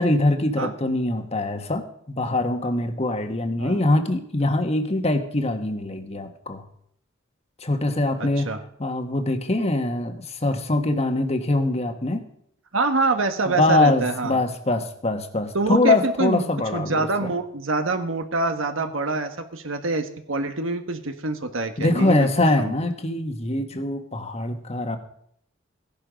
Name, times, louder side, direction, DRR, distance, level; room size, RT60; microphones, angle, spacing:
voice 1, 0.0-6.6 7.6-8.5 8.8-12.2 13.4-17.3 21.8-25.0, left 2 dB, 30° left, 7 dB, 1.4 m, -23 dB
voice 2, 12.7-14.4 15.5-22.3 22.6-22.7, right 3 dB, 80° right, 6 dB, 1.4 m, -25 dB
16.0 x 11.0 x 5.2 m, 0.68 s
head